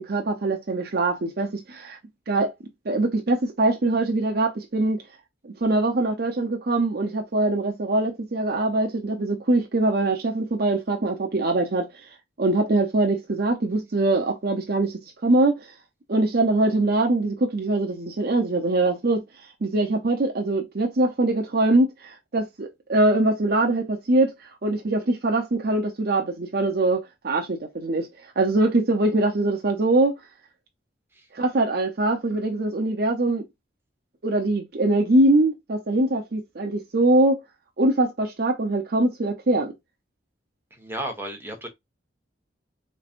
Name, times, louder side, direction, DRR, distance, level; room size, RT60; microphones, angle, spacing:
voice 1, 0.0-2.0 2.3-2.5 2.9-5.0 5.4-12.1 12.4-15.7 16.1-28.1 28.4-30.1 31.3-33.4 34.2-37.4 37.8-39.7, right 2 dB, 55° right, 0.7 m, -23 dB
voice 2, 40.7-41.7, right 1 dB, 15° right, 1.2 m, -33 dB
4.1 x 3.3 x 2.4 m
head